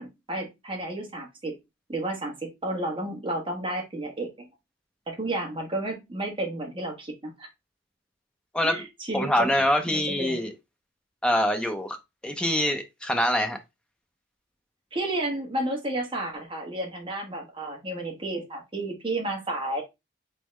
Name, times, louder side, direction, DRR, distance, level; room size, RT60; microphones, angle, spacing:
voice 1, 0.0-1.5 1.9-4.3 5.1-7.5 8.6-9.5 9.9-10.4 14.9-19.8, right 1 dB, 25° right, 1.3 m, -32 dB
voice 2, 9.1-10.5 11.2-12.0 12.2-13.6, left 1 dB, 5° left, 0.5 m, -24 dB
4.0 x 3.6 x 3.1 m
head